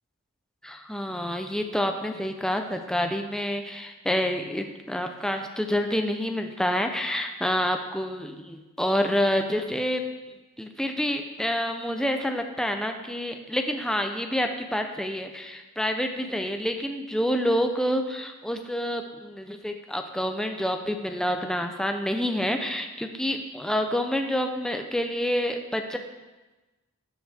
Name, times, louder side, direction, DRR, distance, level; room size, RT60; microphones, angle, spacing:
voice 1, 0.6-10.0 10.6-26.0, equal, 5° left, 4 dB, 0.6 m, -28 dB
13.0 x 9.3 x 3.5 m, 1.1 s
head